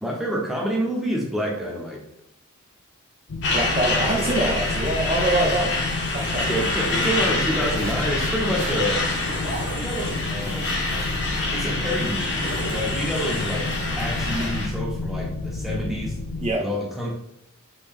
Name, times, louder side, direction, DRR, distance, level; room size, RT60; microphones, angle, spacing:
voice 1, 0.0-2.0 6.5-9.0 9.7-10.8 11.5-12.4 12.7-13.7 14.0-16.2 16.6-17.2, equal, ahead, -3 dB, 0.8 m, -28 dB
sound 1, 3.3-16.5, left 3 dB, 90° left, 0.6 m, -31 dB
Truck, 3.4-14.7, left 2 dB, 55° left, 1.0 m, -27 dB
voice 2, 3.5-5.7 6.1-6.7 16.4-16.6, right 1 dB, 30° right, -1 dB, 0.4 m, -24 dB
sound 2, 6.1-14.5, right 1 dB, 55° right, 1.2 m, -37 dB
5.0 x 2.9 x 3.5 m, 0.77 s
head